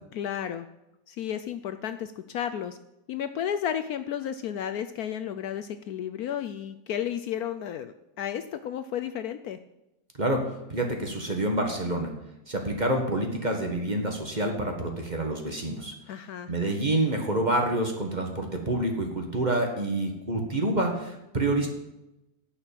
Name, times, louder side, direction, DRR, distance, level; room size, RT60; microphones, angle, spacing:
voice 1, 0.1-0.7 1.1-2.8 3.1-9.6 16.1-16.5, left 9 dB, 70° left, 10 dB, 1.0 m, -32 dB
voice 2, 10.7-12.1 12.5-15.9 16.5-21.7, right 1 dB, 25° right, 3 dB, 1.6 m, -27 dB
11.0 x 5.9 x 8.8 m, 0.92 s
omnidirectional pair, 1.8 m